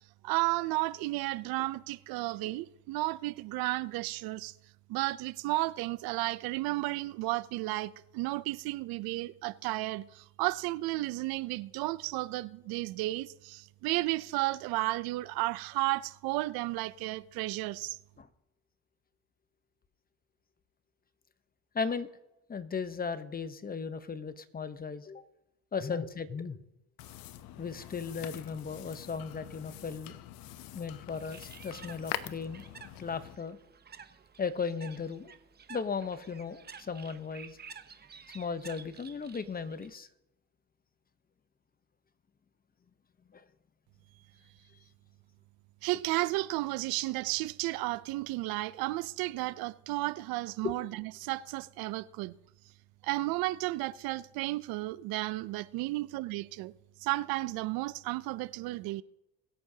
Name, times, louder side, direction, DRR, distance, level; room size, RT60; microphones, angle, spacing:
voice 1, 0.2-4.5 4.9-18.0 45.8-52.4 53.0-56.7 57.0-59.0, right 19 dB, 70° right, 0.6 m, -33 dB
voice 2, 21.7-22.1 22.5-25.2 25.7-26.6 27.6-30.1 30.7-32.7 33.0-33.6 34.4-35.3 35.7-37.6 38.3-40.1 43.3-43.4 50.6-50.8, left 5 dB, 25° left, 0.9 m, -36 dB
sound 1, 27.0-33.4, left 13 dB, 70° left, 0.8 m, -44 dB
Bird, 31.1-39.9, right 6 dB, 25° right, 0.9 m, -52 dB
21.5 x 8.6 x 2.8 m
supercardioid pair, 90°, 37 cm